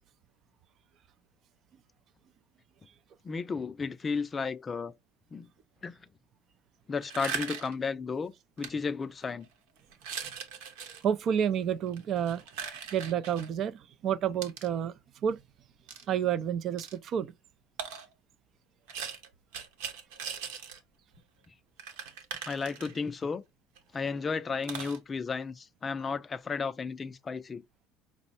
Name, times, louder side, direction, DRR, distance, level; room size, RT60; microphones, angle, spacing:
voice 1, 3.2-4.9 5.3-5.5 5.8-6.0 6.9-9.5 21.5-21.6 22.4-23.4 23.9-27.6, left 5 dB, 25° left, 0.3 m, -33 dB
sound 1, 7.0-7.8 8.6-8.7 9.2-9.5 9.9-11.0 11.9-13.5 14.4-14.7 15.9-16.0 16.8-17.0 17.8-18.1 18.9-20.8 21.1-21.2 21.4-21.5 21.8-23.2 23.8-23.9 24.1-24.2 24.6-25.0, right 7 dB, 90° right, 1.0 m, -39 dB
voice 2, 11.0-12.4 12.9-14.9 15.2-15.4 16.1-17.3, right 9 dB, 50° right, 0.4 m, -29 dB
5.2 x 2.0 x 4.1 m
cardioid pair, 120°, 0 cm